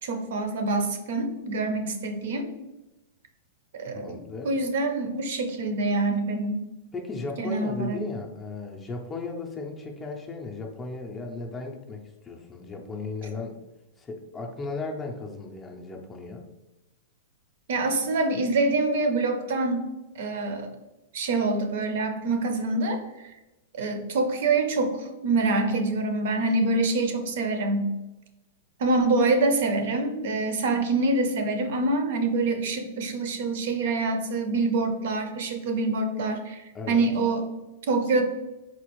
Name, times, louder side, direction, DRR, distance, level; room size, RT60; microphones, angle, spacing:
voice 1, 0.0-2.5 3.7-6.6 7.4-8.0 17.7-19.9 20.2-20.7 21.1-23.0 23.8-27.9 28.8-37.5 37.9-38.2, right 2 dB, 65° right, 6 dB, 0.6 m, -25 dB
voice 2, 3.9-4.5 6.9-13.5 14.0-16.4 36.7-37.0, left 3 dB, 15° left, 2 dB, 0.4 m, -36 dB
4.2 x 2.4 x 3.0 m, 1.0 s
supercardioid pair, 155°, 0 cm